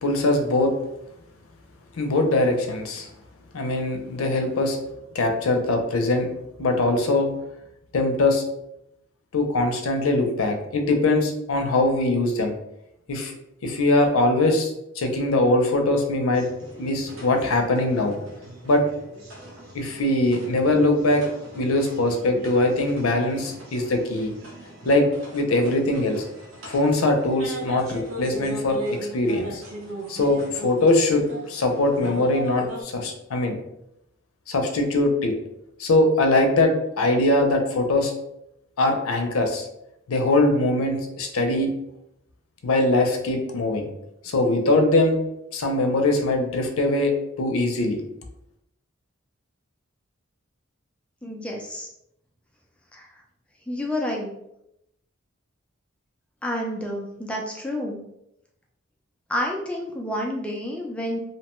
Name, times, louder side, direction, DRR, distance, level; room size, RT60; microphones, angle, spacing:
voice 1, 0.0-0.7 1.9-3.1 3.5-4.8 5.1-6.3 6.6-7.3 7.9-8.4 9.3-12.5 13.1-13.3 13.6-16.4 16.7-18.2 18.7-18.8 19.7-21.2 21.5-24.3 24.8-25.1 25.3-26.2 26.7-29.6 30.1-33.6 34.5-35.3 35.8-38.1 38.8-39.7 40.1-41.7 42.6-43.9 44.2-45.2 45.5-48.0, left 2 dB, 90° left, 4 dB, 0.5 m, -22 dB
sound 1, 16.3-32.8, equal, 80° right, 0.8 m, -38 dB
voice 2, 51.2-51.9 52.9-53.2 53.7-54.3 56.4-58.0 59.3-61.2, left 1 dB, 5° left, -1 dB, 0.3 m, -29 dB
2.8 x 2.2 x 3.0 m, 0.81 s
head